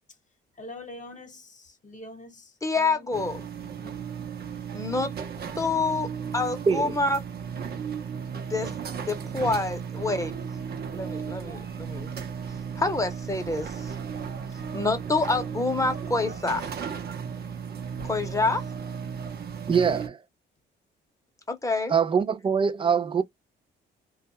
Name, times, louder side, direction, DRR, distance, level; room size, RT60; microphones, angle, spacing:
voice 1, 0.5-3.2 3.8-4.0 14.6-15.0 19.6-19.7, left 2 dB, 40° left, 1.0 m, -45 dB
voice 2, 2.6-3.4 4.7-5.1 5.6-6.1 6.3-7.2 8.3-10.3 10.9-12.1 12.8-13.9 14.7-16.7 18.0-18.6 21.5-21.9, left 3 dB, 15° left, 0.8 m, -27 dB
sound 1, 3.1-20.1, right 7 dB, 55° right, 0.7 m, -35 dB
voice 3, 6.7-7.0 19.7-20.2 21.9-23.2, right 6 dB, 25° right, 0.4 m, -23 dB
2.3 x 2.0 x 2.9 m
cardioid pair, 90°, 20 cm